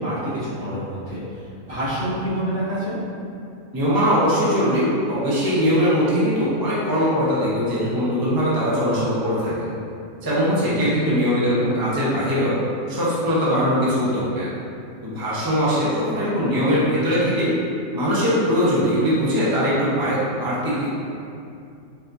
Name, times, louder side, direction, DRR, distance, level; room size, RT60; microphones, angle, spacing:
voice 1, 0.0-1.4 1.7-3.0 10.7-10.8, equal, 80° right, -12 dB, 2.1 m, -27 dB
voice 2, 3.7-9.7 10.2-12.5 12.9-14.5 15.0-17.5 17.9-20.9, equal, 20° right, -9 dB, 0.7 m, -21 dB
5.0 x 2.8 x 2.6 m, 2.5 s
omnidirectional pair, 1.5 m